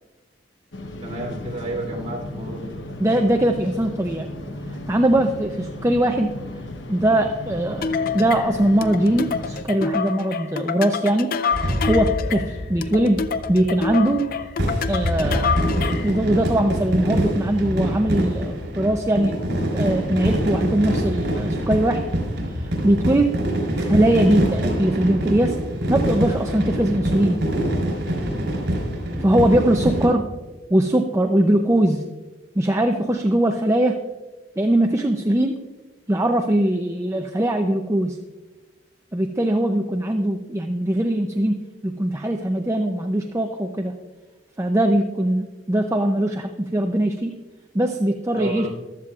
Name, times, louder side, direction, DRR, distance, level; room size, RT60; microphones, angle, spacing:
sound 1, 0.7-9.6, left 1 dB, 75° left, 1.0 m, -35 dB
voice 1, 1.0-2.7 48.4-48.7, right 1 dB, 35° right, -2 dB, 2.9 m, -30 dB
voice 2, 3.0-4.3 4.9-6.4 6.9-7.9 8.1-11.3 11.8-13.2 13.5-14.3 14.9-15.5 16.0-19.4 19.7-22.0 22.5-23.3 23.7-25.6 25.9-27.4 29.2-30.2 30.7-32.0 32.6-34.0 34.6-35.6 36.1-38.2 39.1-44.0 44.6-47.3 47.7-48.7, right 1 dB, 15° right, 3 dB, 0.5 m, -21 dB
sound 2, 7.8-16.2, left 5 dB, 50° left, 0.5 m, -27 dB
sound 3, 11.5-30.1, equal, 60° right, 3.8 m, -25 dB
15.0 x 12.5 x 2.4 m, 1.2 s
head